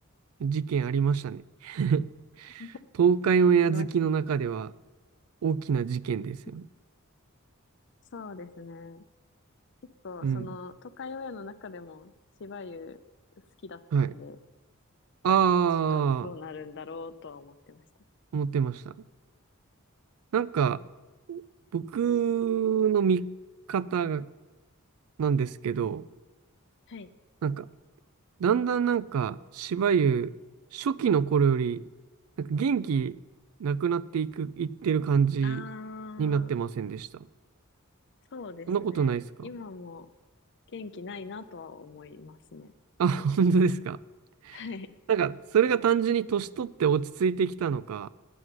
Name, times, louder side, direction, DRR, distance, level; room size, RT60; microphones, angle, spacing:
voice 1, 0.4-2.1 2.4-2.6 3.0-4.7 5.4-6.6 10.2-10.5 13.9-14.1 15.2-16.3 18.3-18.9 20.3-20.8 21.3-21.4 21.7-23.3 23.7-24.3 25.2-26.0 27.4-27.7 28.4-30.3 30.7-31.8 32.4-33.2 33.6-35.6 36.2-37.2 38.7-39.2 43.0-44.0 44.5-44.6 45.1-48.1, right 6 dB, 80° right, 17 dB, 0.4 m, -26 dB
voice 2, 3.6-4.3 8.1-9.0 10.0-12.1 12.4-13.0 13.6-14.4 15.9-17.8 26.9-27.1 35.4-36.5 38.3-40.1 40.7-42.7 44.5-44.9, left 4 dB, 55° left, 12 dB, 0.5 m, -42 dB
9.6 x 7.9 x 6.0 m, 1.2 s
head